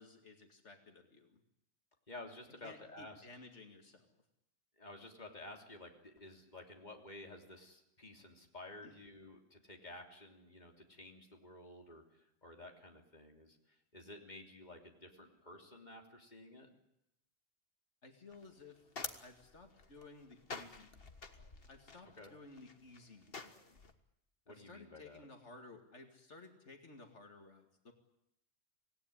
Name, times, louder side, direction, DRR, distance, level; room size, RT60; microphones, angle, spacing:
voice 1, 0.0-1.4 2.6-4.2 8.8-9.0 18.0-18.9 19.2-21.2 21.7-23.8 24.5-27.9, left 3 dB, 85° left, 4 dB, 2.6 m, -56 dB
voice 2, 2.1-3.3 4.8-16.7 22.2-22.3 24.5-25.2, left 2 dB, 40° left, 2 dB, 3.4 m, -53 dB
sound 1, 18.3-23.9, left 4 dB, 55° left, 1.8 m, -49 dB
25.5 x 18.5 x 9.9 m, 0.85 s
omnidirectional pair, 1.2 m